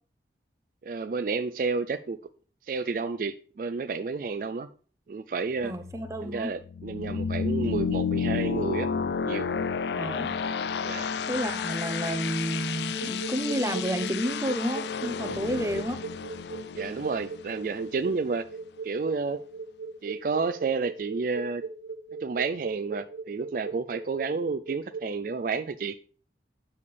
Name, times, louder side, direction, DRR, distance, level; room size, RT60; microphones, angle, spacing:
voice 1, 0.8-2.2 2.6-4.7 5.1-5.7 6.2-8.9 9.2-9.5 10.8-11.1 16.7-18.5 18.8-19.4 20.0-21.6 22.2-26.0, right 4 dB, 50° right, 0.3 m, -30 dB
voice 2, 5.6-6.5 9.9-10.4 11.3-16.0, right 1 dB, 15° right, 0.7 m, -31 dB
sound 1, 5.7-18.3, left 6 dB, 75° left, 0.4 m, -31 dB
sound 2, 12.9-25.1, right 4 dB, 85° right, 0.7 m, -38 dB
8.6 x 6.9 x 3.3 m
head